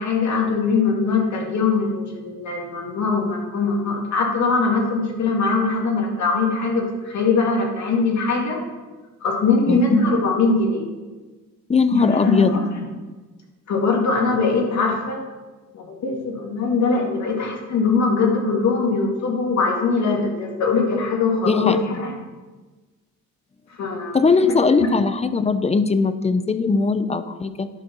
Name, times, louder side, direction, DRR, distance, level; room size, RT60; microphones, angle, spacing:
voice 1, 0.0-8.6 9.2-10.8 11.9-12.6 13.7-15.2 15.7-22.1 23.8-24.2, left 4 dB, 65° left, -1 dB, 2.3 m, -21 dB
voice 2, 11.7-12.5 21.4-21.8 24.1-27.7, left 4 dB, 20° left, 12 dB, 0.6 m, -19 dB
11.0 x 4.4 x 6.1 m, 1.3 s
cardioid pair, 90°, 30 cm